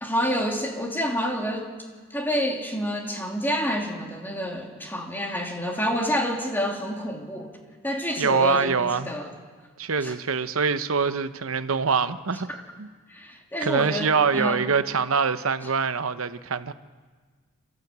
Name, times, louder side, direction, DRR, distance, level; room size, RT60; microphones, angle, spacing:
voice 1, 0.0-1.7 2.1-7.5 7.8-9.3 10.0-10.1 12.5-12.6 13.1-14.6, equal, 10° left, 1 dB, 2.7 m, -28 dB
voice 2, 8.2-9.1 9.8-12.5 12.8-12.9 13.6-16.7, right 5 dB, 80° right, 12 dB, 0.9 m, -24 dB
27.0 x 14.0 x 8.1 m, 1.5 s
head